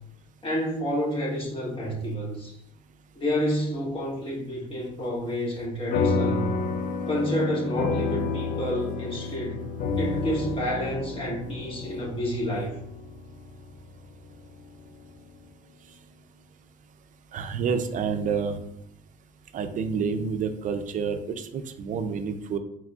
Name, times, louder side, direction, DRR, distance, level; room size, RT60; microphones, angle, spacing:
voice 1, 0.4-2.6 3.1-6.5 7.1-9.6 10.0-12.7, equal, 30° left, -4 dB, 1.7 m, -29 dB
sound 1, 5.9-14.7, left 4 dB, 55° left, 0.5 m, -30 dB
voice 2, 17.3-18.6 19.5-22.6, right 6 dB, 50° right, 9 dB, 0.5 m, -28 dB
4.8 x 3.6 x 2.4 m, 0.74 s
cardioid pair, 110°, 17 cm